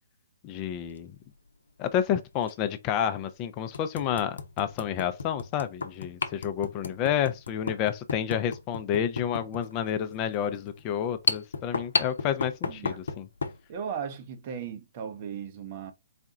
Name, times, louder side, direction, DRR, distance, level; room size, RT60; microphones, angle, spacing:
voice 1, 0.4-1.2 1.8-13.3, left 9 dB, 30° left, 0.5 m, -30 dB
sound 1, 0.7-1.0 2.4-2.5 3.1-3.2 3.7-13.6, left 4 dB, 80° left, 0.7 m, -34 dB
voice 2, 12.7-13.0 13.7-15.9, right 7 dB, 40° right, 0.9 m, -36 dB
4.2 x 2.3 x 3.8 m
hypercardioid pair, 135°, 0 cm